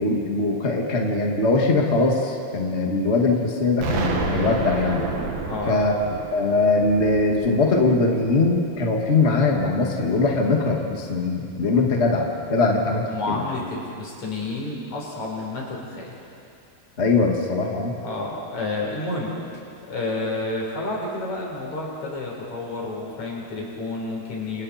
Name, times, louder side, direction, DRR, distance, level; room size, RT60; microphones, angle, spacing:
voice 1, 0.0-5.0 5.7-5.9 6.3-13.4 17.0-17.9, left 3 dB, 70° left, 0 dB, 0.6 m, -21 dB
Explosion, 3.8-8.6, right 4 dB, 60° right, 3.2 m, -30 dB
voice 2, 5.5-5.8 13.0-16.2 18.0-19.3 19.9-24.6, left 2 dB, 40° left, -2 dB, 5.5 m, -30 dB
28.5 x 28.5 x 4.4 m, 2.5 s
omnidirectional pair, 5.2 m